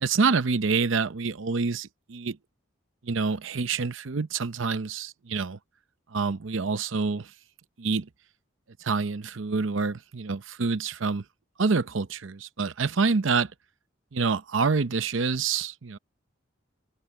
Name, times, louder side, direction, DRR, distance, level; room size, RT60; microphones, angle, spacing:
voice 1, 0.0-2.4 3.0-5.6 6.1-7.3 7.8-8.1 8.8-11.2 11.6-13.5 14.1-16.0, right 4 dB, 75° right, 0.7 m, -27 dB
head